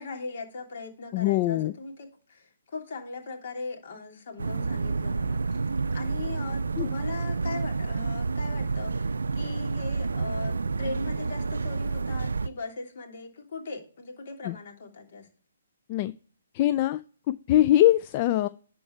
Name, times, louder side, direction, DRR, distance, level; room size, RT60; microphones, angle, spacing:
voice 1, 0.0-5.6 5.9-15.3, left 3 dB, 55° left, 2 dB, 3.0 m, -39 dB
voice 2, 1.1-1.7 6.8-6.9 14.4-14.6 15.9-16.1 16.5-17.0 17.3-18.5, left 14 dB, 35° left, 14 dB, 0.4 m, -22 dB
sound 1, 4.4-12.5, right 4 dB, 85° right, 0.4 m, -29 dB
11.0 x 4.5 x 4.5 m, 0.44 s
hypercardioid pair, 145°, 0 cm